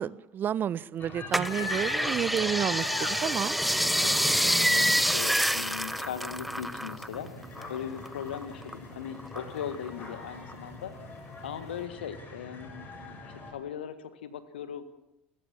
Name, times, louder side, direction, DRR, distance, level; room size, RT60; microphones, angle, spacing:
voice 1, 0.0-3.5, right 9 dB, 35° right, 21 dB, 0.7 m, -30 dB
sound 1, 1.0-13.5, left 3 dB, 35° left, 7.1 m, -42 dB
sound 2, 1.3-7.2 7.4-8.7 9.2-10.0 10.5-10.6, equal, ahead, 0.9 m, -27 dB
voice 2, 4.0-7.3 7.7-10.9 11.4-12.9 13.5-14.8, left 8 dB, 70° left, 12 dB, 1.7 m, -39 dB
29.5 x 15.0 x 7.4 m, 0.93 s
figure-of-eight pair, 70°, 6 cm